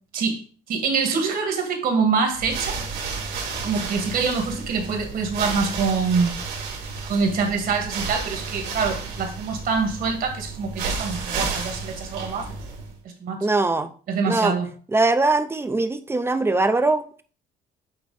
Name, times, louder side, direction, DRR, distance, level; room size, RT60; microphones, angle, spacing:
voice 1, 0.1-2.8 3.6-6.4 7.1-12.5 13.2-13.5 14.1-14.7, right 5 dB, 60° right, 2.0 m, -25 dB
sound 1, 2.3-13.0, right 4 dB, 80° right, 2.9 m, -32 dB
voice 2, 13.4-13.9 14.2-14.6 14.9-17.2, right 2 dB, 15° right, 0.6 m, -21 dB
8.8 x 3.1 x 4.8 m
cardioid pair, 110°, 17 cm